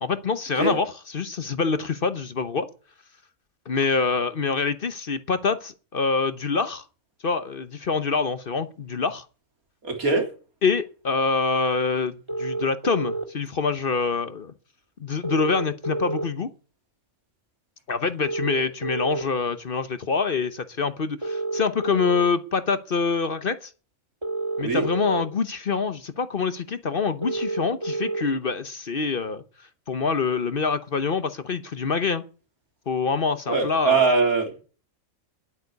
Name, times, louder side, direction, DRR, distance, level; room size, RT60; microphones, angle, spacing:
voice 1, 0.0-2.7 3.7-6.8 7.2-9.2 10.6-14.5 15.0-16.5 17.9-23.7 24.6-29.4 29.9-32.2 32.9-34.1, left 5 dB, 45° left, 1.0 m, -25 dB
voice 2, 9.8-10.3 24.6-24.8 33.5-34.6, right 4 dB, 90° right, 3.8 m, -22 dB
sound 1, 12.3-13.2 15.2-16.2 18.2-19.2 21.2-22.2 24.2-25.2 27.2-28.2, right 2 dB, 20° right, 2.2 m, -29 dB
10.5 x 8.7 x 9.6 m
omnidirectional pair, 1.5 m